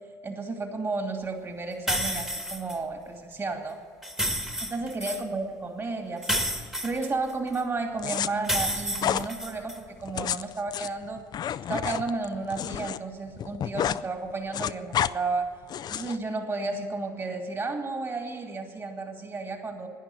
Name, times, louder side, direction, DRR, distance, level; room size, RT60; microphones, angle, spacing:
voice 1, 0.2-3.8 4.6-6.5 6.8-11.3 11.7-15.5 15.9-19.9, right 3 dB, 35° right, 4 dB, 2.5 m, -32 dB
sound 1, 1.9-2.8 4.0-5.2 6.2-7.6 8.4-9.8, equal, 5° right, 1.4 m, -30 dB
sound 2, 8.0-8.3 9.0-9.3 10.0-13.0 13.3-14.0 14.3-15.1 15.7-16.2, left 10 dB, 45° left, 0.4 m, -30 dB
12.0 x 10.0 x 9.9 m, 2.1 s
hypercardioid pair, 65°, 10 cm